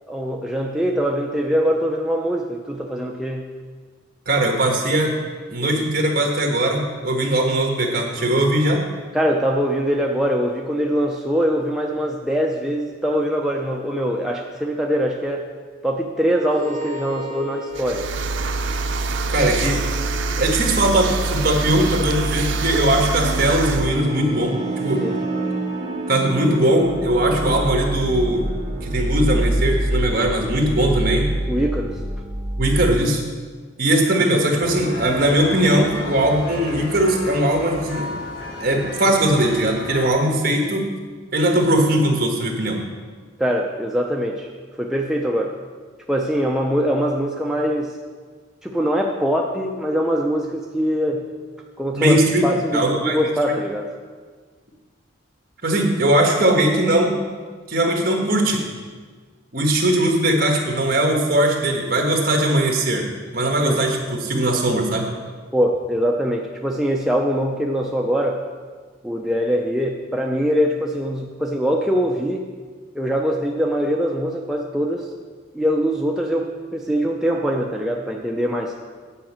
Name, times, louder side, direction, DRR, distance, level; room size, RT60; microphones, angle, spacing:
voice 1, 0.1-3.5 9.1-15.5 15.8-18.1 25.0-25.2 31.5-32.0 43.4-44.5 44.8-45.5 46.1-48.0 48.6-51.3 51.8-53.9 63.6-63.8 65.5-68.4 69.0-72.5 72.9-75.1 75.5-78.7, equal, ahead, -1 dB, 0.4 m, -22 dB
voice 2, 4.3-5.1 5.5-8.8 19.3-19.8 20.4-25.0 26.1-28.5 28.8-31.3 32.6-33.2 33.8-38.1 38.6-40.8 41.3-42.8 51.9-53.2 55.6-57.2 57.7-58.6 59.5-63.1 63.3-65.1, right 1 dB, 45° right, 1 dB, 1.5 m, -19 dB
sound 1, 16.5-33.1, right 1 dB, 30° right, 1.4 m, -28 dB
sound 2, 17.7-23.9, right 3 dB, 65° right, 0.5 m, -25 dB
sound 3, 34.6-40.1, left 2 dB, 70° left, 1.4 m, -33 dB
8.9 x 5.2 x 7.3 m, 1.5 s
head